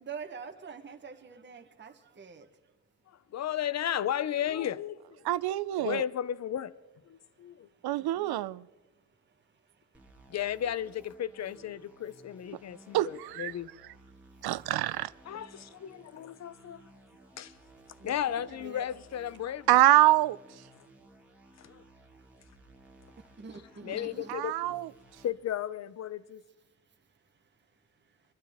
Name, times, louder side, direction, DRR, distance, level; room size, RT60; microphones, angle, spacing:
voice 1, 0.0-2.5 8.0-8.4 18.0-18.8 23.4-24.3, right 5 dB, 30° right, 1.0 m, -45 dB
voice 2, 3.1-5.3 5.8-6.7 7.0-7.7 10.3-13.7 15.2-16.9 17.4-17.5 18.0-19.7 21.6-21.8 23.5-24.5 25.2-26.4, left 10 dB, 45° left, 0.5 m, -34 dB
voice 3, 5.3-6.0 7.8-8.6 12.9-13.5 14.4-15.1 19.7-20.4 24.3-24.9, right 15 dB, 85° right, 0.5 m, -25 dB
sound 1, 9.9-25.3, right 1 dB, 5° right, 1.5 m, -57 dB
23.0 x 12.0 x 3.5 m
cardioid pair, 120°, 37 cm